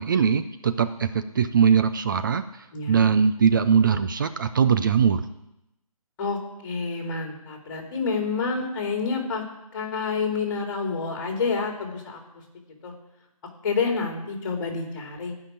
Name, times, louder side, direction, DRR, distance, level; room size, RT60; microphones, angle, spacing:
voice 1, 0.0-2.4 2.9-5.2, right 6 dB, 35° right, 10 dB, 0.5 m, -21 dB
voice 2, 2.7-3.1 6.2-9.4 9.7-12.2 12.8-12.9 13.6-15.3, left 4 dB, 35° left, 2 dB, 2.8 m, -28 dB
13.0 x 5.8 x 8.8 m, 0.87 s
figure-of-eight pair, 155°, 19 cm